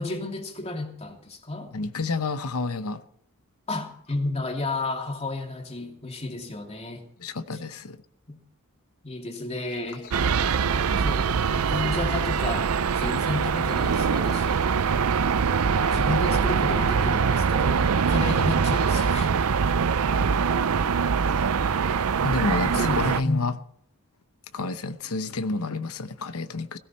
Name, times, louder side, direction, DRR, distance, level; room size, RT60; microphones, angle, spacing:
voice 1, 0.0-1.7 3.7-7.1 7.5-7.6 8.3-8.4 9.0-10.0 11.0-12.7 12.9-14.6 15.9-19.3 19.7-19.8 22.6-23.6, left 2 dB, 30° left, 2.7 m, -32 dB
voice 2, 1.7-3.0 7.2-8.0 16.1-16.2 22.2-23.5 24.5-26.8, left 3 dB, 75° left, 0.9 m, -29 dB
sound 1, 9.7-16.3 16.6-16.7 17.3-18.3, left 3 dB, 50° left, 2.8 m, -48 dB
sound 2, 10.1-23.2, right 6 dB, 70° right, 0.5 m, -23 dB
17.0 x 16.5 x 4.4 m
head